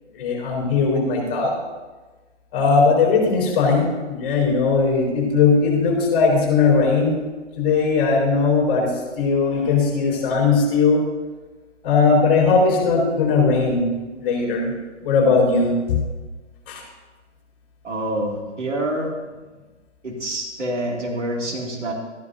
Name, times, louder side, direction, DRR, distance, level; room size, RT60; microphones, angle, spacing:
voice 1, 0.2-1.5 2.5-7.2 7.6-8.9 9.2-11.0 11.8-13.8 14.2-14.7 15.0-16.0 16.7-16.8, left 4 dB, 30° left, -1 dB, 4.1 m, -18 dB
voice 2, 17.8-19.1 20.0-21.9, right 1 dB, 80° right, 0 dB, 2.5 m, -26 dB
13.5 x 12.0 x 2.7 m, 1.3 s
figure-of-eight pair, 135°, 36 cm